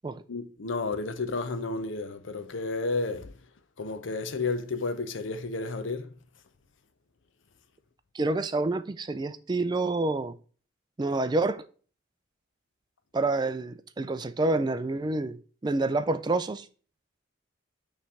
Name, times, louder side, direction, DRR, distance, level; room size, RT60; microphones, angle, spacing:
voice 1, 0.3-3.3 3.8-6.1, left 3 dB, 80° left, 0.7 m, -32 dB
voice 2, 8.1-10.3 11.0-11.6 13.1-15.4 15.6-16.7, right 2 dB, 20° right, 0.3 m, -28 dB
5.8 x 3.2 x 5.4 m
head